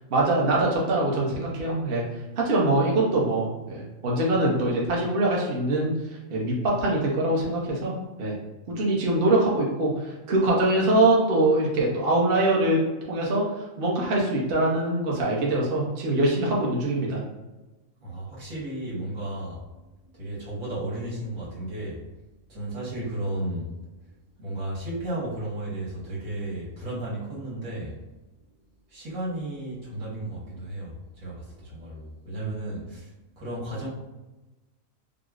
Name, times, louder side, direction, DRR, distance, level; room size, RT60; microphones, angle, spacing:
voice 1, 0.1-2.0 2.4-5.9 6.3-7.9 8.2-8.3 8.7-12.8 13.1-13.4 13.8-17.2 32.4-32.5, right 2 dB, 50° right, -3 dB, 0.8 m, -23 dB
voice 2, 18.0-19.6 20.1-22.0 22.5-23.7 24.4-27.9 28.9-33.1 33.4-33.9, right 1 dB, 85° right, -7 dB, 1.6 m, -34 dB
5.0 x 2.0 x 2.3 m, 1.1 s
omnidirectional pair, 1.4 m